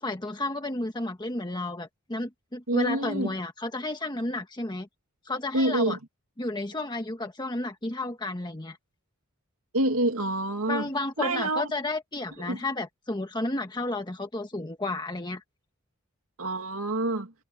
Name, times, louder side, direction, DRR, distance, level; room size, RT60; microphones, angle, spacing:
voice 1, 0.0-4.9 5.2-6.0 6.4-8.8 10.7-15.4, left 2 dB, 20° left, 1.2 m, -32 dB
voice 2, 2.7-3.3 5.5-6.0 9.7-10.9 11.2-11.7 12.4-12.6 16.4-17.3, right 1 dB, 80° right, 2.4 m, -27 dB
head